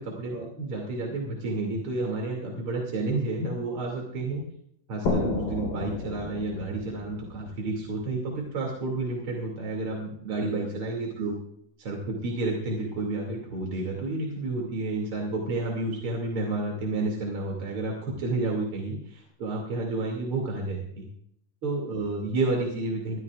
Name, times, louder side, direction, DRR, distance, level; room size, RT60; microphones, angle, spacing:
voice 1, 0.0-4.4 4.9-11.4 11.8-21.1 21.6-23.2, right 2 dB, 35° right, -1 dB, 2.9 m, -30 dB
sound 1, 5.1-8.6, left 3 dB, 70° left, 5.8 m, -32 dB
23.0 x 14.5 x 2.5 m, 0.71 s
omnidirectional pair, 4.6 m